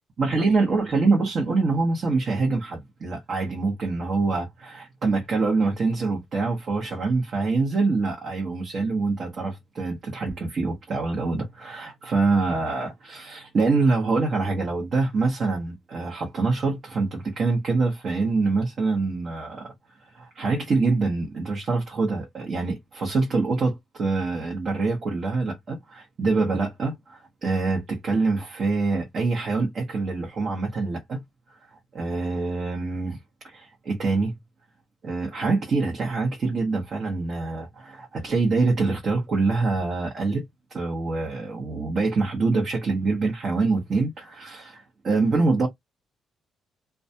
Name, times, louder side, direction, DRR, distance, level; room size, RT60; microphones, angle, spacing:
voice 1, 0.2-19.7 20.1-31.2 31.9-33.2 33.4-34.3 35.0-40.5 40.7-45.7, right 3 dB, 50° right, 0.8 m, -25 dB
2.3 x 2.2 x 2.7 m
cardioid pair, 90°, 0 cm